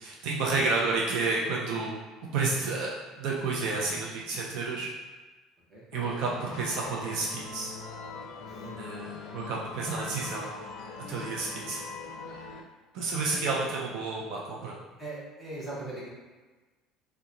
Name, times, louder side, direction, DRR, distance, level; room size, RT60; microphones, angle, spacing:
voice 1, 0.0-1.9 2.3-4.9 5.9-7.7 8.8-10.5 11.1-11.8 12.9-14.7, right 3 dB, 60° right, -3 dB, 0.5 m, -30 dB
sound 1, 5.9-12.6, left 4 dB, 65° left, 0.4 m, -42 dB
voice 2, 15.0-16.1, right 2 dB, 10° right, -7 dB, 0.9 m, -41 dB
2.8 x 2.2 x 3.7 m, 1.3 s
cardioid pair, 165°, 0 cm